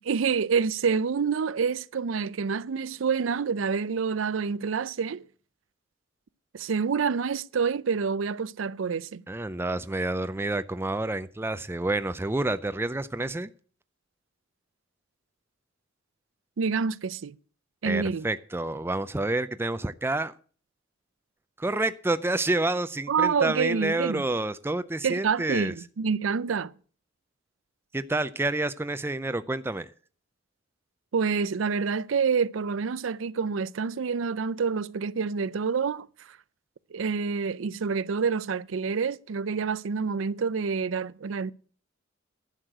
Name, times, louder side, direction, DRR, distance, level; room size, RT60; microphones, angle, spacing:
voice 1, 0.0-5.2 6.5-9.2 16.6-17.4 17.8-18.3 23.1-24.3 25.0-26.7 31.1-36.1 36.9-41.5, right 5 dB, 85° right, 0.5 m, -27 dB
voice 2, 9.3-13.5 17.8-20.3 21.6-25.7 27.9-29.9, right 2 dB, 10° right, 0.4 m, -28 dB
11.5 x 6.4 x 7.7 m
head